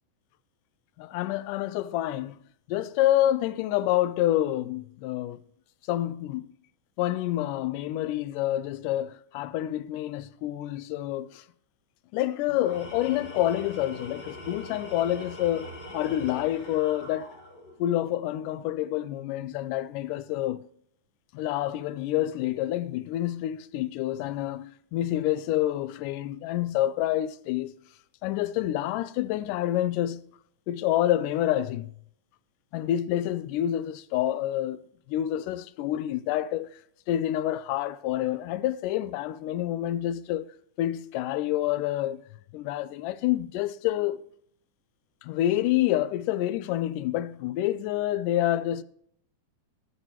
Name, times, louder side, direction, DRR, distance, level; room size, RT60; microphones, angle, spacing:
voice 1, 1.0-2.3 2.7-5.4 5.9-6.5 7.0-11.4 12.1-17.3 17.8-20.6 21.3-27.7 28.2-30.2 30.7-31.9 32.7-34.8 35.1-36.7 37.1-40.5 40.8-42.2 42.5-44.2 45.2-48.8, left 13 dB, 85° left, 2.1 m, -28 dB
Tools, 12.5-17.8, left 1 dB, 40° left, 1.3 m, -42 dB
14.5 x 11.0 x 3.0 m
omnidirectional pair, 3.7 m